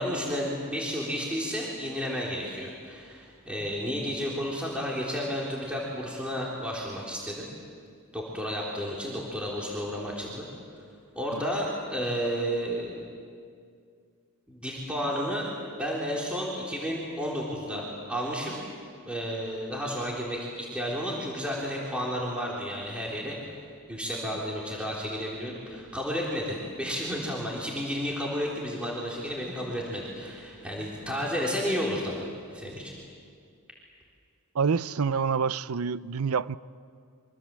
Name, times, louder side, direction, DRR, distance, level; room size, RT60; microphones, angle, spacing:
voice 1, 0.0-7.5 8.1-10.5 11.2-13.0 14.5-15.5 15.8-18.6 19.0-23.6 23.9-32.9, equal, 5° right, 3.6 m, -32 dB
voice 2, 34.5-36.6, right 6 dB, 80° right, 0.6 m, -27 dB
26.5 x 25.0 x 7.6 m
head